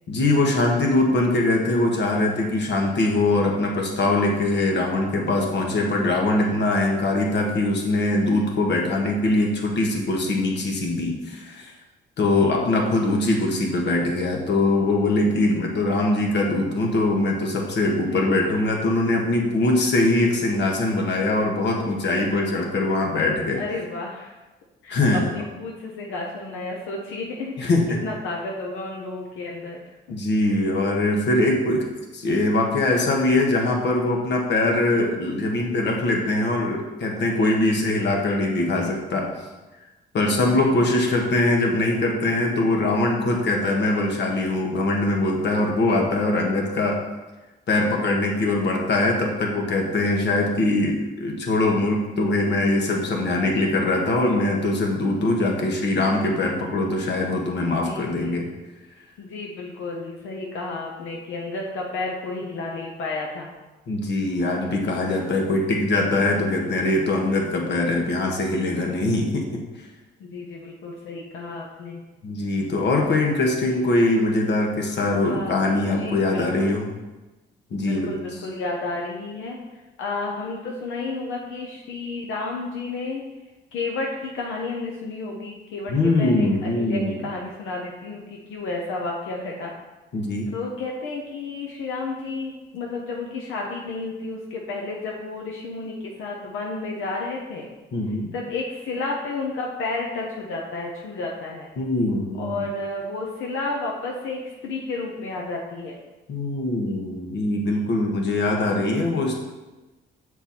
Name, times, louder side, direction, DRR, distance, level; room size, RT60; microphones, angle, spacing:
voice 1, 0.1-11.7 12.2-23.6 24.9-25.3 27.6-28.0 30.1-31.8 32.1-39.3 40.1-47.0 47.7-58.5 63.9-69.6 72.2-76.9 77.7-78.1 85.9-87.2 90.1-90.5 97.9-98.3 101.8-102.6 106.3-109.4, left 2 dB, 60° left, 1 dB, 1.4 m, -22 dB
voice 2, 18.0-18.5 20.0-20.3 23.6-24.3 24.8-27.7 28.0-30.2 34.9-35.1 37.8-38.1 40.6-40.8 57.6-58.4 59.2-63.5 66.6-66.8 70.2-72.0 75.2-76.8 77.8-79.6 80.0-83.2 83.7-85.9 86.2-89.7 90.5-97.7 98.3-101.7 102.4-106.0, left 3 dB, 85° left, -1 dB, 0.9 m, -32 dB
7.0 x 4.5 x 4.3 m, 1.1 s
cardioid pair, 90°, 20 cm